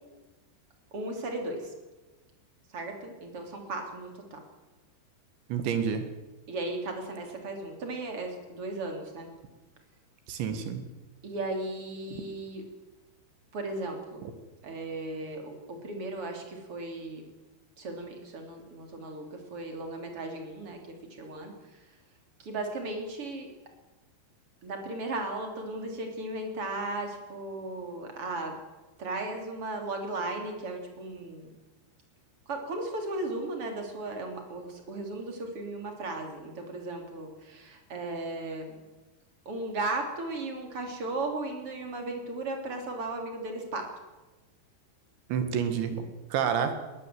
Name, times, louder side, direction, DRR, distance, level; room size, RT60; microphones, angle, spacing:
voice 1, 0.9-1.7 2.7-4.4 6.5-9.3 11.2-12.6 13.5-14.2 14.6-17.2 17.8-20.8 21.1-21.8 22.4-23.5 24.6-28.5 29.0-31.5 32.5-38.7 39.5-43.9, right 2 dB, 35° right, 3 dB, 4.0 m, -36 dB
voice 2, 5.5-6.0 10.3-10.8 45.3-46.0 46.3-46.7, right 7 dB, 80° right, 8 dB, 4.1 m, -28 dB
20.5 x 19.0 x 7.9 m, 1.1 s
omnidirectional pair, 5.1 m